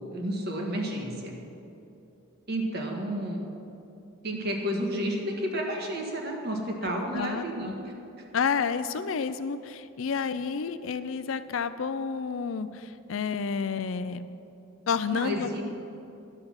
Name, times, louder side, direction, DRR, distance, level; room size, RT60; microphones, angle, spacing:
voice 1, 0.0-1.4 2.5-3.4 4.2-7.9 15.1-15.6, equal, 50° right, 1 dB, 1.5 m, -31 dB
voice 2, 6.8-7.7 8.3-14.2 14.9-15.5, left 6 dB, 70° left, 12 dB, 0.4 m, -30 dB
11.0 x 7.8 x 5.8 m, 2.8 s
head